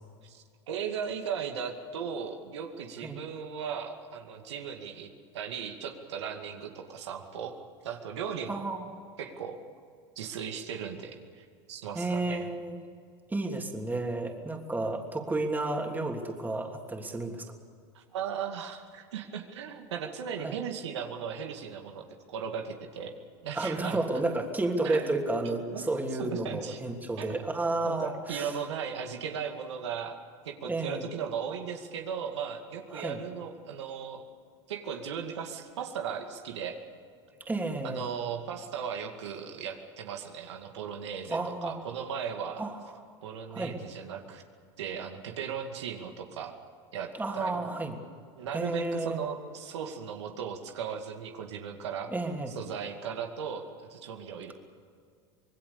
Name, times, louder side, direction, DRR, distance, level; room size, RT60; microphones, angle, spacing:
voice 1, 0.2-7.5 7.8-8.6 9.2-9.6 10.2-12.5 17.9-23.1 23.4-24.0 24.8-25.0 25.4-25.8 26.2-26.8 27.2-27.5 27.8-30.2 30.4-34.2 34.7-36.8 37.8-42.7 43.2-44.4 44.8-46.5 46.9-47.7 48.4-52.1 52.5-54.5, right 7 dB, 85° right, 4 dB, 2.3 m, -37 dB
voice 2, 8.5-8.9 11.9-12.8 13.3-17.5 20.4-20.6 23.5-28.5 30.6-31.1 32.9-33.2 37.5-38.0 41.3-41.8 42.6-42.8 43.5-43.8 47.2-48.0 48.5-49.2 52.1-52.5, right 2 dB, 10° right, 2 dB, 3.1 m, -31 dB
26.0 x 20.0 x 7.0 m, 2.2 s
hypercardioid pair, 100°, 14 cm